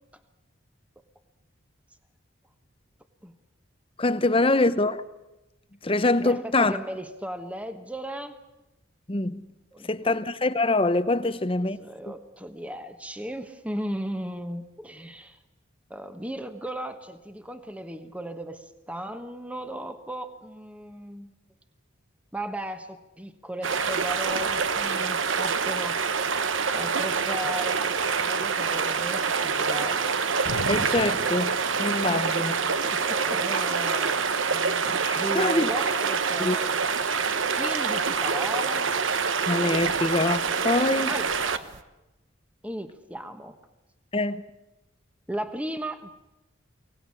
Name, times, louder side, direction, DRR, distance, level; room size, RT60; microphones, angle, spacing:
voice 1, 4.0-5.0 5.8-6.8 9.1-9.4 9.9-11.8 12.1-12.2 30.7-32.5 35.0-35.7 36.4-36.6 39.5-41.1 44.1-44.4, left 2 dB, 25° left, 0.8 m, -24 dB
voice 2, 6.2-8.4 9.7-10.2 11.8-15.4 15.9-21.3 22.3-30.1 32.0-32.3 32.8-36.8 37.5-38.9 41.1-41.8 42.6-43.6 45.3-46.1, right 1 dB, 5° right, 1.2 m, -36 dB
sound 1, 23.6-41.8, right 5 dB, 75° right, 1.2 m, -26 dB
sound 2, 30.5-33.3 33.6-33.7, left 2 dB, 85° left, 1.2 m, -39 dB
24.0 x 18.5 x 9.7 m
head